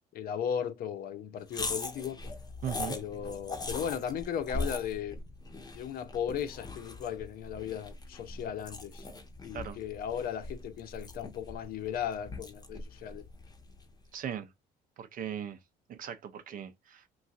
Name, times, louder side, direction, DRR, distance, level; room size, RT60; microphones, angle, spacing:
voice 1, 0.1-2.2 2.9-5.2 5.7-9.1 9.4-13.3, left 8 dB, 60° left, 0.5 m, -36 dB
sound 1, 1.5-14.0, left 3 dB, 25° left, 0.7 m, -41 dB
voice 2, 2.6-3.0 9.5-9.8 14.1-14.5 15.0-15.6 15.9-17.0, right 9 dB, 55° right, 0.5 m, -38 dB
3.1 x 2.6 x 2.4 m
cardioid pair, 110°, 17 cm